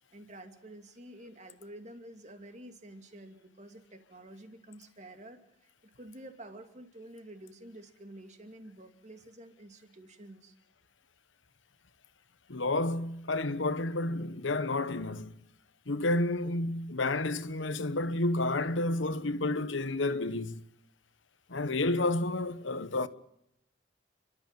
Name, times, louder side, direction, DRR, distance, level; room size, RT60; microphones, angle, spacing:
voice 1, 0.1-5.7 6.0-10.5, right 1 dB, 40° right, 2.5 m, -49 dB
voice 2, 12.5-15.3 15.9-20.6 21.5-23.1, left 2 dB, 90° left, 1.2 m, -30 dB
30.0 x 13.5 x 9.1 m
head